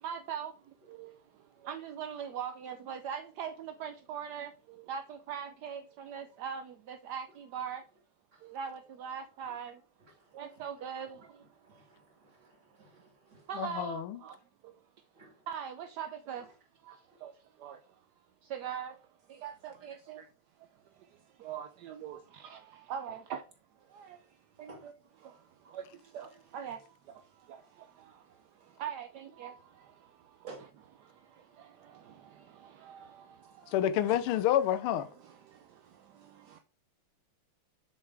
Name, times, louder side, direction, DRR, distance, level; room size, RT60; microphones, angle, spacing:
voice 1, 0.0-7.8 8.4-9.8 10.3-11.4 11.7-11.8 13.5-14.4 14.6-14.7 15.5-16.5 16.8-17.8 18.4-19.0 19.3-20.3 20.6-23.4 23.9-24.3 24.6-24.9 25.2-30.5 31.0-33.7 35.2-36.6, right 8 dB, 70° right, 1.0 m, -42 dB
voice 2, 10.0-10.7 11.1-13.5 15.1-15.5 16.4-16.5 17.1-17.2 23.1-23.2 24.7-24.9 25.6-25.7 26.6-26.8 30.5-30.7 31.4-31.5 34.1-34.2, right 3 dB, 35° right, 2.2 m, -54 dB
voice 3, 13.5-14.2 33.7-35.1, left 11 dB, 80° left, 1.6 m, -28 dB
7.4 x 6.6 x 3.4 m
omnidirectional pair, 2.4 m